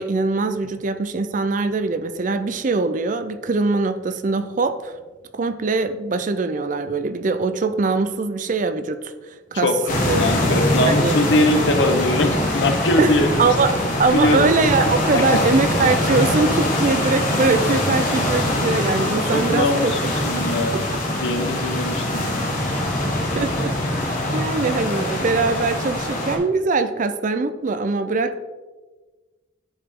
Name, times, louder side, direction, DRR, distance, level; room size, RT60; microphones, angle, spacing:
voice 1, 0.0-4.9 5.3-9.1 9.5-9.7 10.0-10.2 10.6-11.1 13.0-13.1 13.4-20.1 23.4-23.8 24.3-28.4, right 3 dB, 45° right, 11 dB, 0.4 m, -22 dB
voice 2, 9.5-13.3 14.1-14.5 15.1-15.2 19.3-20.8 21.1-22.2, left 1 dB, 70° left, 6 dB, 0.9 m, -21 dB
sound 1, 9.9-26.4, left 1 dB, 45° left, 1.5 m, -23 dB
9.9 x 4.9 x 3.6 m, 1.3 s
head